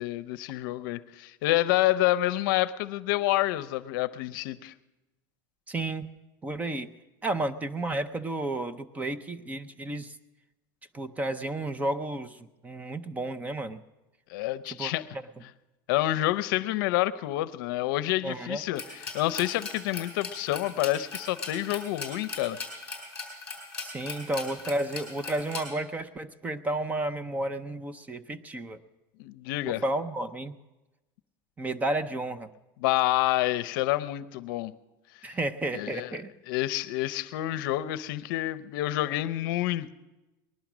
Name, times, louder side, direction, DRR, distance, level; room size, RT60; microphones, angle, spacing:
voice 1, 0.0-4.7 14.3-15.1 15.9-22.6 29.2-29.8 32.8-34.7 35.7-36.1 36.5-39.9, left 15 dB, 70° left, 16 dB, 0.6 m, -28 dB
voice 2, 5.7-6.1 6.4-6.9 7.2-10.2 10.9-13.8 14.7-15.2 18.2-18.6 23.8-28.8 29.7-30.6 31.6-32.5 35.2-36.3, right 2 dB, 15° right, 11 dB, 0.5 m, -32 dB
sound 1, 18.8-25.6, left 4 dB, 10° left, 4.6 m, -38 dB
20.0 x 11.5 x 6.1 m, 1.1 s
supercardioid pair, 150°, 12 cm